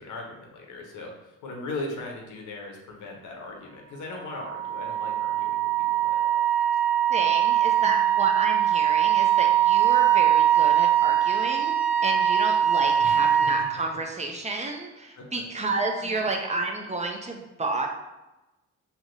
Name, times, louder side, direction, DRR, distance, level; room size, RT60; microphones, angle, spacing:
voice 1, 0.0-6.4 13.0-13.4 15.2-15.3 16.0-16.2, left 2 dB, 75° left, 0 dB, 0.8 m, -39 dB
Wind instrument woodwind instrument, 4.2-13.7, right 11 dB, 90° right, 0.5 m, -22 dB
voice 2, 7.1-17.9, right 3 dB, 25° right, 2 dB, 0.4 m, -31 dB
3.3 x 2.7 x 2.6 m, 1.0 s
cardioid pair, 90°, 30 cm